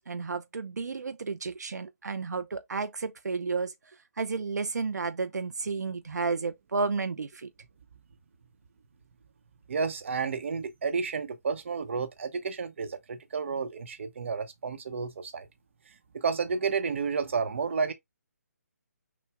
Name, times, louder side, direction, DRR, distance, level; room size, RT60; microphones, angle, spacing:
voice 1, 0.1-3.7 4.2-7.5, right 4 dB, 85° right, 0.6 m, -32 dB
voice 2, 9.7-15.5 16.1-17.9, right 5 dB, 45° right, 0.9 m, -31 dB
6.1 x 2.3 x 3.4 m
hypercardioid pair, 170°, 9 cm